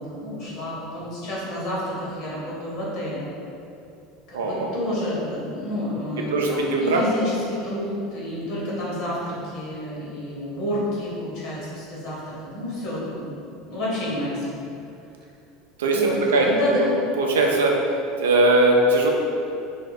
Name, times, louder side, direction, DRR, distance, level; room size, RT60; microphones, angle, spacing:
voice 1, 0.0-3.3 4.3-13.3 13.7-14.6 15.9-16.9, left 1 dB, 60° left, -7 dB, 1.1 m, -29 dB
voice 2, 4.3-4.7 6.3-7.0 15.8-16.5 17.2-17.8 18.2-19.1, right 2 dB, 80° right, 0 dB, 0.4 m, -20 dB
2.7 x 2.0 x 3.9 m, 2.6 s
hypercardioid pair, 80°, 0 cm